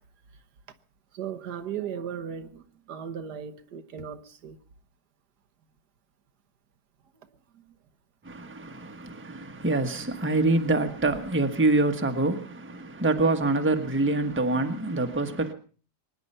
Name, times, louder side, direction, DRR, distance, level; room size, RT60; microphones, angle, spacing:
voice 1, 1.1-4.6 7.5-7.6, right 8 dB, 80° right, 1.7 m, -37 dB
voice 2, 8.2-15.5, right 2 dB, 10° right, 1.2 m, -25 dB
24.0 x 10.5 x 5.6 m
omnidirectional pair, 1.8 m